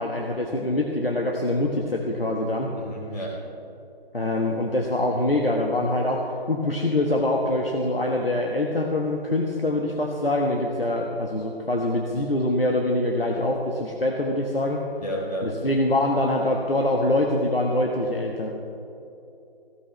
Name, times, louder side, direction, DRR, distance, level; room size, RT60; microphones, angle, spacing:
voice 1, 0.0-2.7 4.1-14.8 15.4-18.5, left 1 dB, 70° left, 0 dB, 1.5 m, -24 dB
voice 2, 2.8-3.4 15.0-15.5, equal, 45° left, -3 dB, 3.7 m, -31 dB
17.0 x 16.0 x 3.2 m, 2.8 s
figure-of-eight pair, 165°, 30 cm